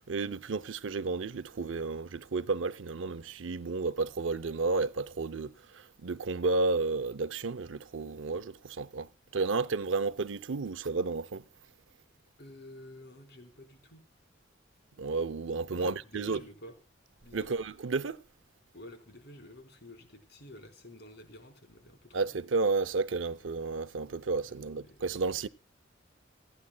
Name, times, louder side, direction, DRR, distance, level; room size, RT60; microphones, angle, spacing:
voice 1, 0.0-11.4 15.0-16.4 17.3-18.2 22.1-25.5, right 3 dB, 80° right, 0.6 m, -32 dB
voice 2, 12.4-14.0 15.7-16.8 17.2-17.7 18.7-22.3 24.4-25.3, left 1 dB, 60° left, 4.2 m, -50 dB
27.5 x 9.8 x 2.3 m
head